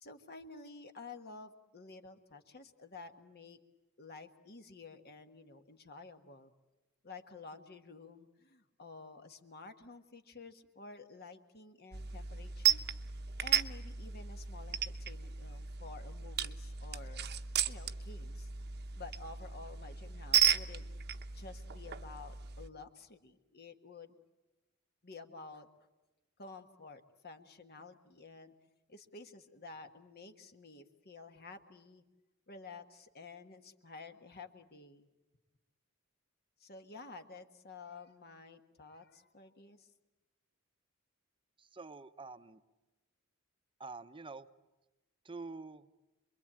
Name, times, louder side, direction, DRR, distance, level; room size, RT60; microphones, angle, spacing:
voice 1, 0.0-3.6 4.0-6.5 7.0-12.8 13.4-17.3 17.6-18.5 18.9-20.9 21.3-24.1 25.0-25.7 26.4-28.5 28.9-32.0 32.5-35.1 36.6-39.9, left 3 dB, 50° left, 7 dB, 1.5 m, -51 dB
sound 1, 11.9-22.7, right 9 dB, 50° right, 1.0 m, -35 dB
voice 2, 41.6-42.6 43.8-44.5 45.2-45.9, right 3 dB, 25° right, 11 dB, 0.9 m, -47 dB
27.0 x 22.5 x 8.8 m, 1.1 s
head